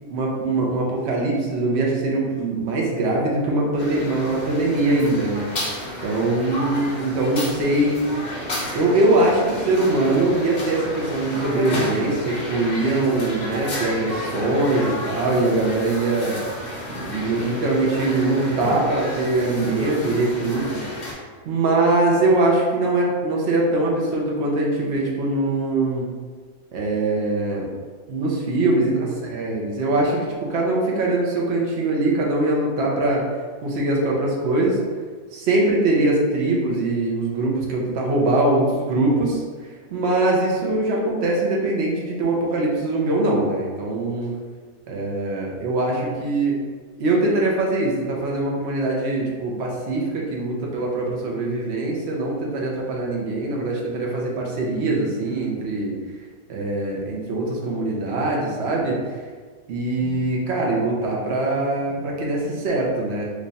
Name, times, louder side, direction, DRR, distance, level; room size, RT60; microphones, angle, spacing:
voice 1, 0.1-5.5 6.0-8.0 8.7-16.4 16.9-21.1 21.4-26.1 26.7-27.7 28.1-33.2 33.6-34.8 35.3-39.4 39.9-44.4 44.9-46.6 47.0-55.9 56.5-59.0 59.7-63.3, right 2 dB, 55° right, -2 dB, 0.9 m, -22 dB
sound 1, 3.8-21.1, left 1 dB, 45° left, 0.6 m, -31 dB
3.1 x 2.4 x 4.0 m, 1.5 s
omnidirectional pair, 1.5 m